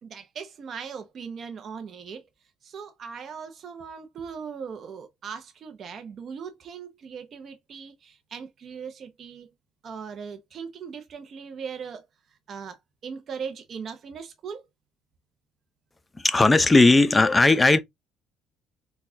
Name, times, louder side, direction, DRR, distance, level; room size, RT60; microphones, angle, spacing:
voice 1, 0.0-2.3 2.6-9.5 9.8-12.1 12.5-12.8 13.0-14.7, right 6 dB, 50° right, 0.7 m, -39 dB
voice 2, 16.2-17.8, left 2 dB, 15° left, 0.6 m, -17 dB
4.0 x 2.4 x 2.7 m
cardioid pair, 100°, 0 cm